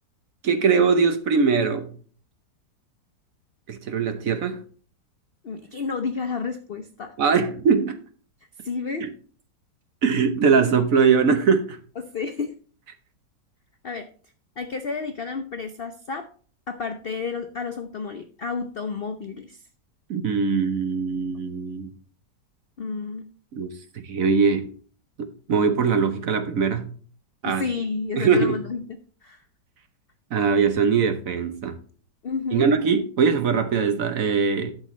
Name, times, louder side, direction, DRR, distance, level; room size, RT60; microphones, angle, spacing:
voice 1, 0.4-1.9 3.7-4.6 7.2-8.0 9.0-9.1 10.0-11.8 20.1-21.9 23.5-23.7 24.1-24.7 25.2-26.9 27.4-27.6 28.2-28.6 30.3-31.7 32.5-34.7, right 5 dB, 55° right, 1.2 m, -21 dB
voice 2, 5.4-7.1 8.6-9.1 12.1-12.5 13.8-14.0 14.6-16.2 16.7-19.6 21.3-21.4 22.8-23.3 27.5-28.8 29.2-29.4 32.2-32.7, left 4 dB, 70° left, 0.5 m, -31 dB
12.5 x 6.4 x 3.1 m
omnidirectional pair, 1.9 m